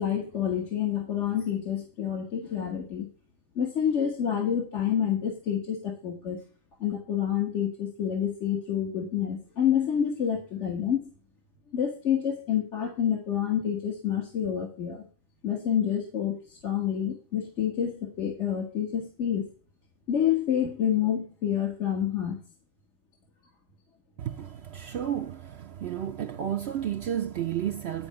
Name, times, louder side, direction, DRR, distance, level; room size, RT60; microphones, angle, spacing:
voice 1, 0.0-3.1 3.6-6.4 6.8-11.1 11.7-15.0 15.4-19.5 20.1-22.4, left 9 dB, 60° left, 1.7 m, -28 dB
voice 2, 24.2-28.1, right 10 dB, 60° right, 0.7 m, -32 dB
10.5 x 4.7 x 7.6 m
omnidirectional pair, 1.4 m